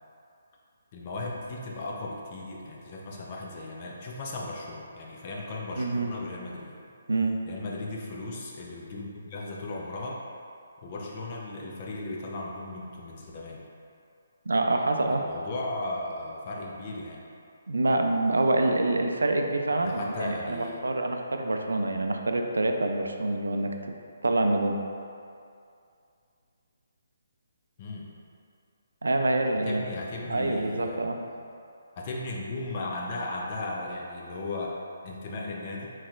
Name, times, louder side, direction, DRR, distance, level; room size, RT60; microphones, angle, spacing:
voice 1, 0.9-6.8 7.5-10.2 10.8-13.6 15.1-17.2 19.8-20.8 27.8-28.1 29.6-31.5 32.0-34.8 35.0-35.9, left 2 dB, 40° left, -2 dB, 0.6 m, -36 dB
voice 2, 5.8-6.1 7.1-7.4 14.5-15.2 17.7-23.7 24.2-24.8 29.0-29.8 30.3-31.2, right 2 dB, 85° right, 4 dB, 0.4 m, -26 dB
4.3 x 4.0 x 2.5 m, 2.4 s
figure-of-eight pair, 145°, 0 cm